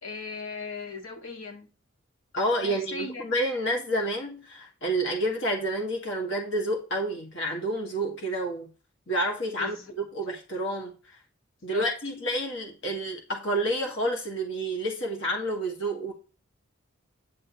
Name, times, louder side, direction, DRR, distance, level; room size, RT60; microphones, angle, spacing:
voice 1, 0.0-1.7 2.6-3.3 9.6-9.9 11.7-11.9, left 4 dB, 85° left, 2.1 m, -37 dB
voice 2, 2.3-8.7 9.1-11.2 11.6-16.1, right 1 dB, 65° left, 1.9 m, -29 dB
9.9 x 6.7 x 3.1 m
head